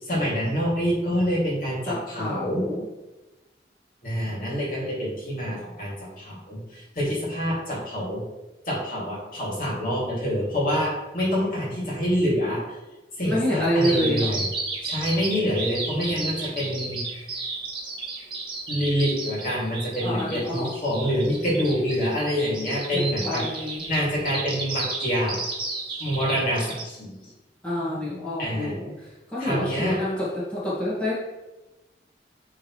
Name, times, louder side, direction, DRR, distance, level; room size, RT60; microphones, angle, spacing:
voice 1, 0.0-2.7 4.0-8.2 8.7-12.6 13.2-14.5 14.8-17.0 18.7-23.4 23.9-25.4 26.0-27.2 28.4-28.7 29.4-30.0, equal, 50° left, -5 dB, 2.2 m, -26 dB
voice 2, 1.8-2.9 13.2-14.3 20.0-20.7 22.9-23.8 27.6-28.9 29.3-31.1, left 1 dB, 5° left, -10 dB, 1.8 m, -27 dB
Bird vocalization bird call bird song, 13.8-26.8, right 3 dB, 25° right, 1.1 m, -33 dB
9.3 x 3.7 x 3.1 m, 1.1 s
head